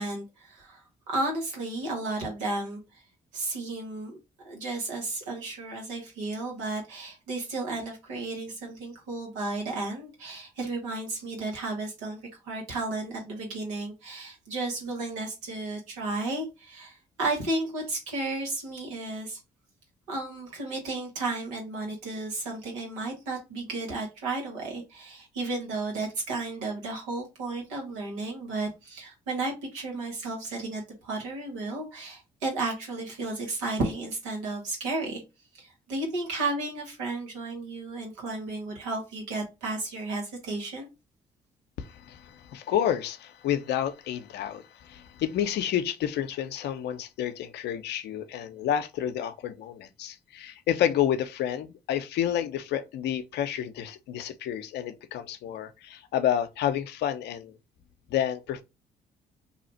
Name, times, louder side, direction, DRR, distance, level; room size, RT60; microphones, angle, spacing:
voice 1, 0.0-3.0 3.3-19.4 20.1-35.2 35.5-40.9, right 2 dB, 90° right, 1.3 m, -33 dB
voice 2, 41.8-57.5 58.1-58.6, left 10 dB, 70° left, 0.5 m, -30 dB
2.8 x 2.4 x 4.0 m
hypercardioid pair, 50°, 18 cm